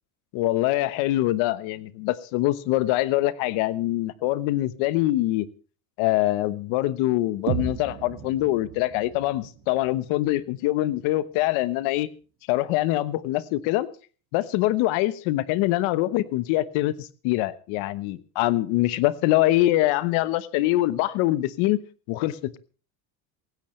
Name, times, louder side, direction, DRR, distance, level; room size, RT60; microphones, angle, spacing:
voice 1, 0.3-5.5 6.0-12.1 12.5-13.9 14.3-21.8 22.1-22.6, left 16 dB, 70° left, 16 dB, 1.2 m, -24 dB
sound 1, 7.5-11.4, right 9 dB, 80° right, 2.1 m, -36 dB
18.0 x 16.0 x 3.2 m, 0.38 s
cardioid pair, 120°, 49 cm